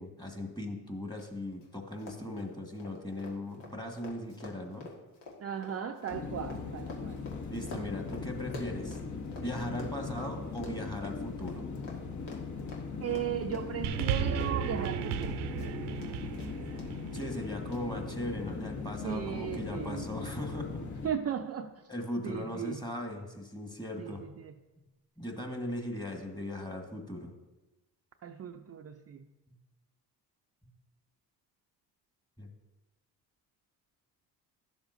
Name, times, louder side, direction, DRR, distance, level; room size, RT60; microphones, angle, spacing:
voice 1, 0.0-4.9 7.5-9.0 9.4-11.7 16.8-20.8 21.9-24.2 25.2-27.3 29.5-29.6 30.6-30.7 32.4-32.5, left 1 dB, 10° left, 2 dB, 1.6 m, -38 dB
Run, 1.2-1.3 1.5-1.7 2.0-9.5 9.8-16.1 16.4-16.9 17.2-17.3 17.7-17.8, left 3 dB, 75° left, 1.8 m, -47 dB
voice 2, 5.4-7.2 13.0-15.4 19.0-20.0 21.0-21.7 22.2-22.8 24.0-24.5 28.2-29.2, right 8 dB, 35° right, 4 dB, 0.5 m, -36 dB
sound 1, 6.1-21.1, left 4 dB, 40° left, 1.2 m, -39 dB
sound 2, 13.8-18.4 19.2-19.3, right 8 dB, 75° right, 0.7 m, -35 dB
11.5 x 7.1 x 2.6 m, 1.1 s
supercardioid pair, 60°, 43 cm